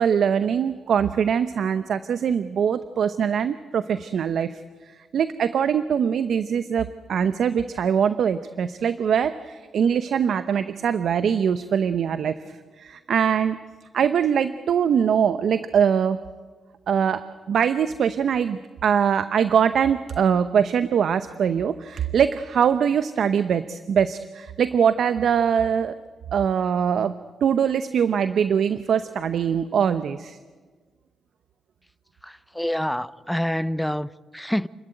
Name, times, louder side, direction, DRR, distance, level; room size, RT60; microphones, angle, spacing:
voice 1, 0.0-4.6 5.1-12.3 12.8-13.6 13.9-16.2 16.9-17.2 17.5-25.9 26.3-27.1 27.4-30.4, right 7 dB, 70° right, 0.8 m, -22 dB
voice 2, 32.2-34.7, equal, 5° left, 0.8 m, -27 dB
29.0 x 14.0 x 9.2 m
cardioid pair, 60°, 0 cm